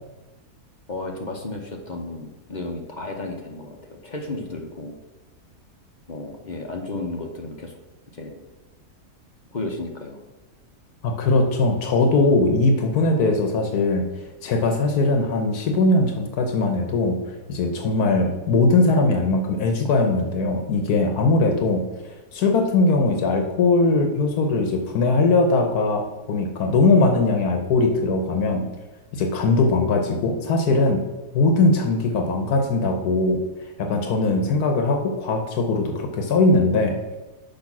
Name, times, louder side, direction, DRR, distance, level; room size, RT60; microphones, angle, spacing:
voice 1, 0.9-4.9 6.1-7.8 8.1-8.4 9.5-10.2, left 2 dB, 40° left, 2 dB, 0.7 m, -33 dB
voice 2, 11.0-14.0 14.4-17.2 17.5-21.8 22.3-28.6 29.1-31.0 31.3-33.4 33.8-37.0, left 3 dB, 75° left, 4 dB, 1.3 m, -20 dB
6.5 x 5.3 x 5.9 m, 1.1 s
omnidirectional pair, 1.6 m